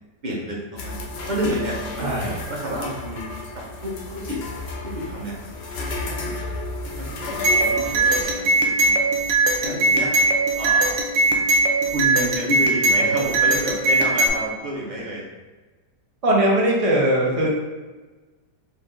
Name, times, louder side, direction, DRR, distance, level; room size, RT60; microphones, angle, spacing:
voice 1, 0.2-1.0 1.3-2.1 2.5-4.4 4.8-5.4 5.8-6.4 6.9-9.0 9.6-10.1 10.5-11.0 11.9-15.2 17.2-17.5, equal, 40° right, -3 dB, 0.6 m, -30 dB
sound 1, 0.8-8.3, left 2 dB, 70° left, 0.5 m, -32 dB
voice 2, 2.0-2.4 16.2-17.5, right 1 dB, 70° right, -4 dB, 0.3 m, -20 dB
sound 2, 7.4-14.3, right 2 dB, 90° right, 1.4 m, -20 dB
4.5 x 2.6 x 3.8 m, 1.3 s
omnidirectional pair, 1.9 m